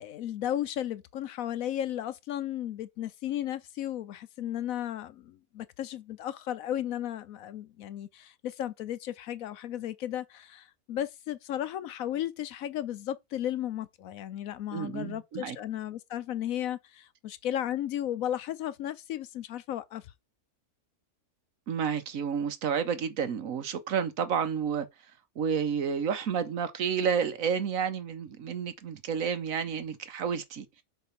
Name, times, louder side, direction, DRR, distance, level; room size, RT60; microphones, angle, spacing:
voice 1, 0.0-20.1, left 11 dB, 70° left, 1.0 m, -34 dB
voice 2, 14.7-15.6 21.7-24.9 25.4-30.7, right 7 dB, 65° right, 1.2 m, -30 dB
6.9 x 3.1 x 5.8 m
omnidirectional pair, 1.6 m